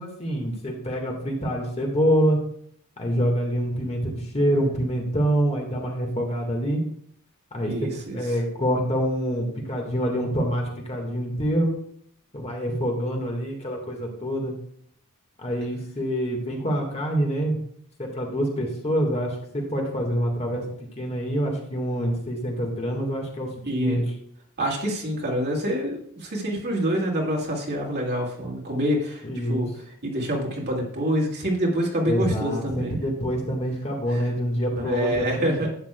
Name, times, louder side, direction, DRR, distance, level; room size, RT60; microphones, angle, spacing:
voice 1, 0.0-2.4 3.0-6.8 7.5-7.9 8.1-11.7 12.3-14.5 15.4-17.6 18.0-20.7 21.0-23.5 23.8-24.0 29.2-29.7 32.0-35.7, equal, 30° left, 1 dB, 1.7 m, -26 dB
voice 2, 7.7-8.2 23.7-24.0 24.6-29.7 30.0-33.0 34.1-34.2 34.8-35.7, equal, 45° right, -1 dB, 2.1 m, -26 dB
11.5 x 8.5 x 2.3 m, 0.65 s
head